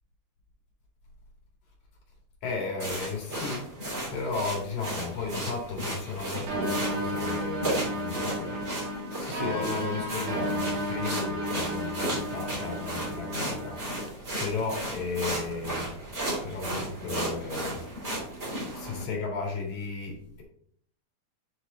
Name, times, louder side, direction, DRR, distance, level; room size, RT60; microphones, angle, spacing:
voice 1, 2.4-3.7 4.1-8.7 9.2-18.0 18.8-20.4, left 4 dB, 65° left, -2 dB, 3.5 m, -35 dB
sound 1, 2.8-19.0, right 1 dB, 20° right, 3.4 m, -35 dB
sound 2, 6.5-14.1, equal, 75° right, 2.4 m, -33 dB
7.6 x 4.8 x 3.9 m, 0.63 s
omnidirectional pair, 3.7 m